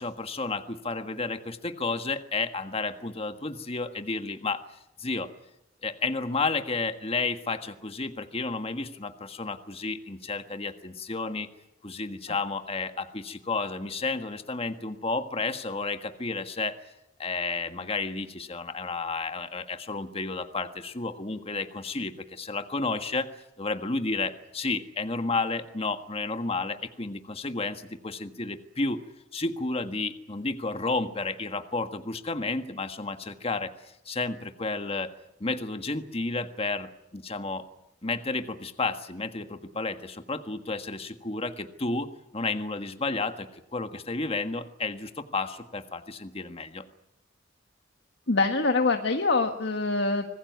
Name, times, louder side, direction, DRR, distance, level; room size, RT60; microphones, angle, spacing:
voice 1, 0.0-4.6 5.0-5.3 5.8-11.5 11.8-16.7 17.2-23.3 23.6-29.0 29.3-35.1 35.4-37.6 38.0-42.1 42.3-46.8, left 3 dB, 30° left, 8 dB, 1.6 m, -31 dB
voice 2, 48.3-50.3, left 3 dB, 65° left, 4 dB, 1.7 m, -24 dB
25.5 x 20.5 x 9.4 m, 0.82 s
head